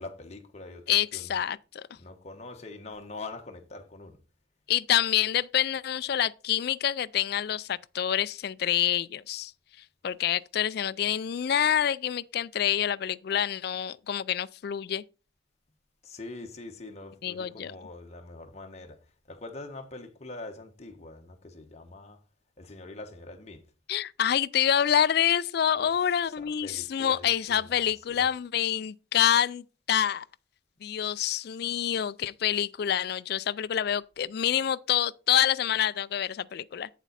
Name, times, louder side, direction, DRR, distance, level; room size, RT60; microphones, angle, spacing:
voice 1, 0.0-1.5 1.9-4.2 16.0-19.0 19.3-22.2 22.6-23.6 25.7-28.3, left 2 dB, 35° left, 1.3 m, -44 dB
voice 2, 0.9-1.8 4.7-9.5 10.0-15.0 17.2-17.7 23.9-30.2 30.8-36.9, left 10 dB, 55° left, 0.3 m, -27 dB
8.2 x 7.3 x 4.1 m
head